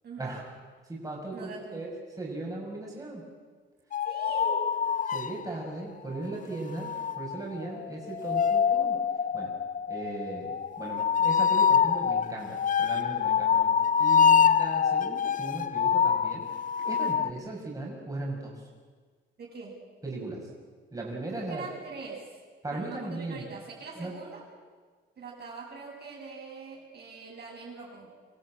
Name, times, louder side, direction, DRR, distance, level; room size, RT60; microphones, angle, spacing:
voice 1, 0.0-0.4 1.3-1.8 4.0-4.6 19.4-19.8 21.3-22.3 22.7-24.4 25.2-28.1, right 4 dB, 55° right, -2 dB, 7.7 m, -42 dB
voice 2, 0.9-1.9 2.2-3.2 5.1-9.0 9.3-9.5 9.9-10.5 10.8-16.4 16.8-18.6 20.0-20.5 20.9-21.7 22.6-23.4 24.0-24.1, right 2 dB, 15° right, -3 dB, 6.0 m, -37 dB
sound 1, 3.9-5.7 6.8-17.3, left 7 dB, 40° left, 0.7 m, -25 dB
25.5 x 15.5 x 8.9 m, 1.5 s
cardioid pair, 90°, 20 cm